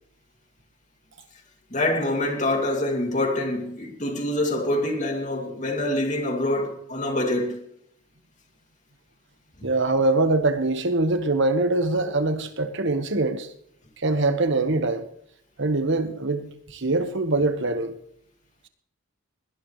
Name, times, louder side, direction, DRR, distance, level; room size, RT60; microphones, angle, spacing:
voice 1, 1.7-7.6 9.6-9.7, left 1 dB, 35° left, 2.6 m, -25 dB
voice 2, 9.6-13.5 14.0-15.0 15.6-17.9, right 2 dB, 60° right, 1.3 m, -23 dB
21.0 x 18.0 x 3.2 m
head